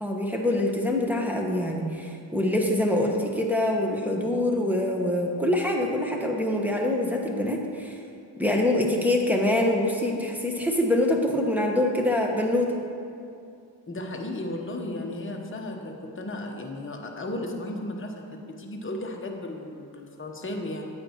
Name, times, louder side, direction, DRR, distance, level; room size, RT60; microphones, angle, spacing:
voice 1, 0.0-8.0 8.4-12.7, left 1 dB, 5° right, -1 dB, 1.2 m, -25 dB
voice 2, 13.9-20.9, left 1 dB, 25° left, 1 dB, 1.0 m, -35 dB
8.7 x 8.6 x 3.0 m, 2.5 s
cardioid pair, 50°, 46 cm